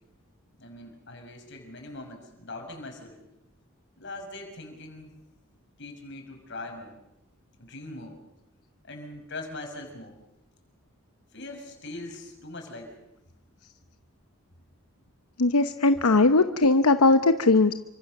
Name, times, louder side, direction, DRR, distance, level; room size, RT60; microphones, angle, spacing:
voice 1, 0.6-3.3 4.0-5.1 5.8-6.9 7.6-8.2 8.8-10.2 11.3-13.0, left 2 dB, 55° left, 4 dB, 6.2 m, -41 dB
voice 2, 15.4-17.7, left 3 dB, 90° left, 9 dB, 0.9 m, -19 dB
28.5 x 25.0 x 6.7 m, 0.86 s
head